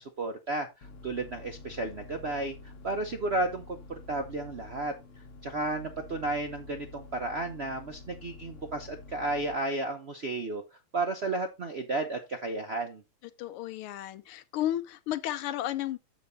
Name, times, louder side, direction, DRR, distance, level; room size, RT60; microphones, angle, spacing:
voice 1, 0.0-4.9 5.4-10.6 10.9-13.0, right 2 dB, 70° right, 0.6 m, -33 dB
sound 1, 0.8-9.6, left 3 dB, 50° left, 1.0 m, -48 dB
voice 2, 13.4-16.0, left 13 dB, 85° left, 1.6 m, -33 dB
7.1 x 5.8 x 4.0 m
omnidirectional pair, 2.4 m